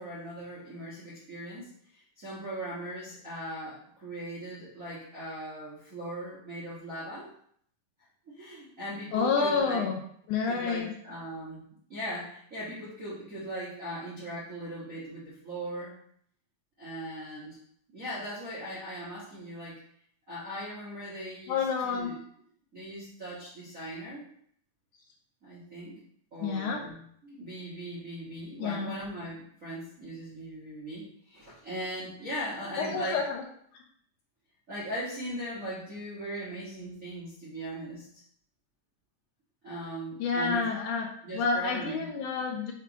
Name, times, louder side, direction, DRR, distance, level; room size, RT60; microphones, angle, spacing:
voice 1, 0.0-7.3 8.3-9.8 10.4-11.6 11.9-15.9 16.8-17.6 17.9-19.8 20.3-22.2 22.7-24.2 25.4-25.9 26.3-33.2 34.7-38.2 39.6-40.7 41.2-42.1, right 1 dB, 45° right, -8 dB, 1.1 m, -39 dB
voice 2, 9.1-10.0 10.3-10.9 21.5-22.1 26.4-26.8 28.6-28.9 32.8-33.4 40.2-42.7, left 5 dB, 75° left, 2 dB, 2.0 m, -29 dB
6.1 x 3.5 x 4.6 m, 0.65 s
omnidirectional pair, 3.9 m